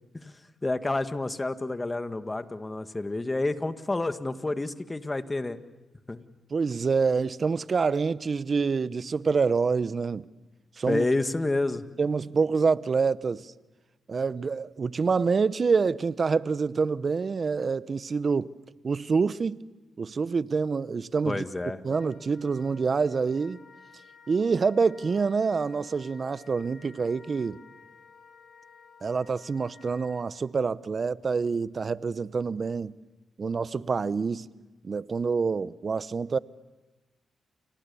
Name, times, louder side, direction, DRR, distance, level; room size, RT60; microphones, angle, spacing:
voice 1, 0.1-5.6 6.1-6.2 10.9-11.9 21.3-21.8, left 2 dB, 25° left, 1.9 m, -29 dB
voice 2, 6.5-10.3 10.8-11.0 12.0-13.5 14.1-18.5 18.8-19.6 20.0-21.4 21.8-23.6 24.3-27.6 29.0-32.9 33.4-34.5 34.8-36.4, right 5 dB, 50° right, 0.9 m, -26 dB
Wind instrument woodwind instrument, 21.9-30.2, left 5 dB, 70° left, 5.9 m, -54 dB
29.5 x 28.0 x 7.1 m
supercardioid pair, 50°, 0 cm